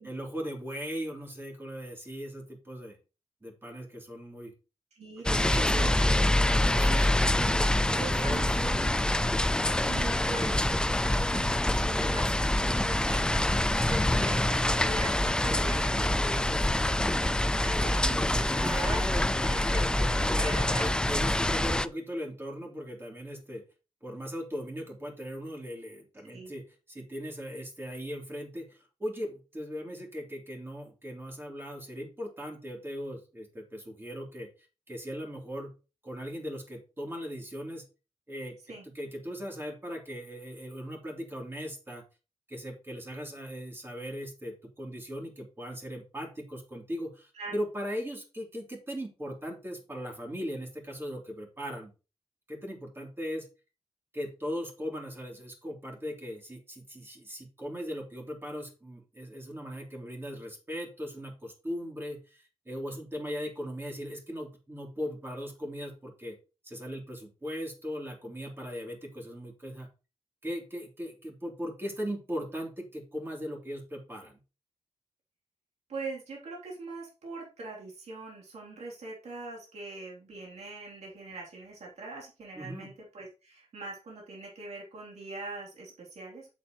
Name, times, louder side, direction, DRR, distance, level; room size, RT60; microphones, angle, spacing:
voice 1, 0.0-3.0 3.4-4.5 5.3-5.9 6.4-8.6 9.7-9.9 18.5-20.5 20.8-23.6 24.0-34.5 34.9-35.7 36.0-37.8 38.3-42.0 42.5-51.9 52.5-53.5 54.1-66.4 66.6-69.9 70.4-74.4 82.6-82.9, equal, 20° right, 0 dB, 3.1 m, -38 dB
voice 2, 4.9-6.1 6.4-6.6 7.3-9.2 9.8-13.6 13.9-19.2 19.5-21.0 21.5-21.6 26.3-26.5 38.7-38.8 47.3-47.5 75.9-86.5, right 2 dB, 80° right, -3 dB, 3.1 m, -42 dB
sound 1, 5.3-21.9, left 1 dB, 5° left, 0.4 m, -26 dB
8.0 x 7.5 x 3.0 m, 0.31 s
wide cardioid pair, 95°, 11 cm